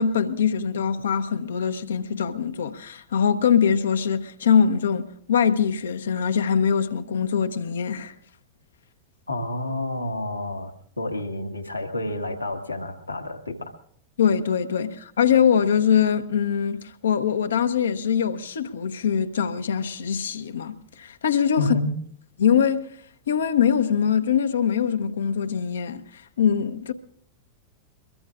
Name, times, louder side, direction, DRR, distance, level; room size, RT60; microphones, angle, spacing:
voice 1, 0.0-8.1 14.2-21.7 22.4-22.9 23.3-26.0 26.4-26.9, left 7 dB, 65° left, 1.0 m, -23 dB
voice 2, 9.3-13.8 21.6-22.0, left 2 dB, 80° left, 1.7 m, -29 dB
23.0 x 22.5 x 2.5 m
figure-of-eight pair, 90°, 0 cm